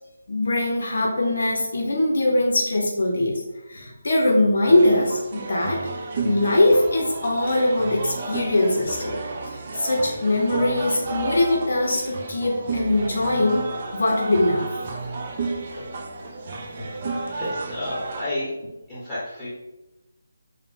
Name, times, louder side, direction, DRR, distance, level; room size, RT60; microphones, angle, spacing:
voice 1, 0.3-3.4 3.7-5.8 6.2-9.2 9.4-13.7 13.9-14.6 15.8-15.9 16.8-16.9, left 1 dB, 70° left, 0 dB, 0.8 m, -21 dB
sound 1, 4.6-18.2, right 3 dB, 35° right, 0.4 m, -31 dB
voice 2, 16.6-16.9 17.3-18.5 18.9-19.5, left 1 dB, 5° left, -12 dB, 1.2 m, -31 dB
4.7 x 2.2 x 3.4 m, 0.99 s
hypercardioid pair, 170°, 0 cm